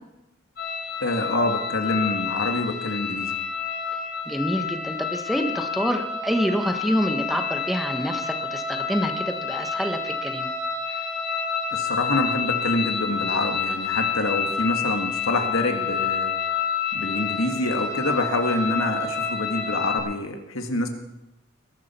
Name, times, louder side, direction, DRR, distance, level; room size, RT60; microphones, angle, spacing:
sound 1, 0.6-20.0, left 6 dB, 55° left, 5.7 m, -28 dB
voice 1, 1.0-3.3 11.7-16.3 16.9-20.9, left 2 dB, 80° left, 4 dB, 1.9 m, -26 dB
voice 2, 4.2-10.5 10.9-11.1, equal, ahead, 4 dB, 1.4 m, -27 dB
21.0 x 12.5 x 4.4 m, 0.94 s
head